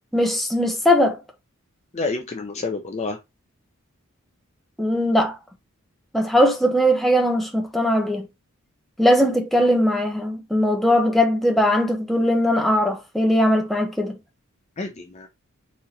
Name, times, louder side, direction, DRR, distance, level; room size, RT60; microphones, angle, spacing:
voice 1, 0.1-1.2 4.8-5.4 6.1-8.3 9.0-14.1, equal, ahead, 0.8 m, -20 dB
voice 2, 1.9-3.2 14.8-15.3, left 3 dB, 30° left, 0.5 m, -29 dB
4.2 x 2.8 x 3.8 m
head